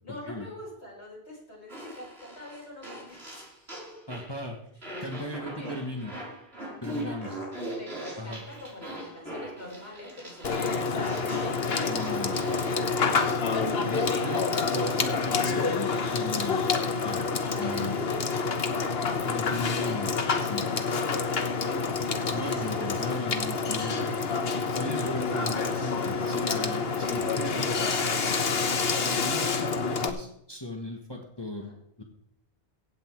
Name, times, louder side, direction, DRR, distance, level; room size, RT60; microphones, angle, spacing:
voice 1, 0.0-4.0 5.4-5.7 7.0-7.4 7.8-12.0 12.3-12.4 17.6-18.4 20.5-22.1 22.4-22.8 31.5-31.8, left 1 dB, 90° left, -4 dB, 5.9 m, -44 dB
Fart, 1.7-4.4 4.8-15.2, right 1 dB, 70° right, 5.1 m, -39 dB
voice 2, 4.1-4.6 5.0-6.2 6.8-7.4 8.2-8.4 11.9-12.4 13.8-16.7 17.0-17.3 17.6-17.9 19.2-20.1 20.4-20.7 22.3-24.1 24.7-27.7 29.0-32.0, left 1 dB, 25° left, 1 dB, 1.6 m, -36 dB
Water / Water tap faucet / Sink (filling or washing), 10.4-30.1, left 4 dB, 65° left, 1.3 m, -28 dB
16.5 x 8.3 x 4.7 m, 0.73 s
omnidirectional pair, 1.1 m